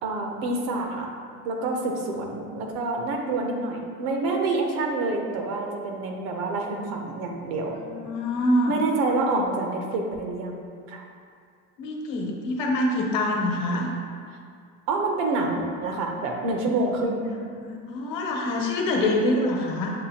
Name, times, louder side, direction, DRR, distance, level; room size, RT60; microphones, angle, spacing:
voice 1, 0.0-1.1 1.4-7.7 8.7-11.0 14.9-17.3, right 2 dB, 85° right, 1 dB, 0.8 m, -27 dB
voice 2, 7.8-8.8 11.8-13.9 17.6-19.9, left 1 dB, 65° left, -1 dB, 0.9 m, -25 dB
7.3 x 2.5 x 2.8 m, 2.2 s
cardioid pair, 130°, 35 cm